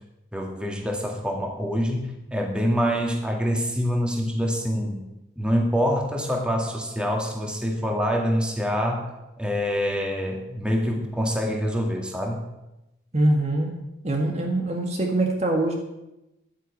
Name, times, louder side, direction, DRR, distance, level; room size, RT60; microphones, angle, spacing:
voice 1, 0.3-5.0 5.4-9.1 9.4-12.4, equal, 5° right, 0 dB, 2.2 m, -25 dB
voice 2, 13.1-13.8 14.0-15.7, right 1 dB, 35° right, 2 dB, 1.9 m, -23 dB
11.5 x 10.0 x 8.4 m, 0.94 s
head